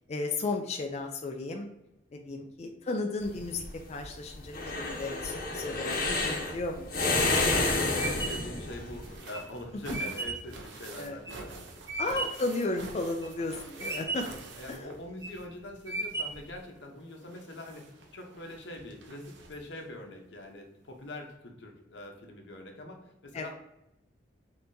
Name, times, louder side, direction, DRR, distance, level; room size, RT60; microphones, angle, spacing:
voice 1, 0.1-1.7 2.1-3.6 3.9-6.9 10.9-11.2 12.0-14.3 14.7-14.9 23.3-23.5, left 2 dB, 35° left, 2 dB, 0.4 m, -34 dB
sound 1, 3.2-9.0, left 2 dB, 55° left, 0.8 m, -29 dB
voice 2, 7.0-11.7 14.6-23.6, left 1 dB, 80° left, 3 dB, 0.8 m, -44 dB
sound 2, 8.0-12.5 13.0-13.5 13.8-14.5 15.0-15.4 15.9-16.6, right 3 dB, 15° right, 0.6 m, -36 dB
sound 3, 8.8-15.6 15.8-19.8 20.9-21.0 21.3-21.4, right 3 dB, 85° right, 0.7 m, -48 dB
5.5 x 2.8 x 2.7 m, 0.89 s
head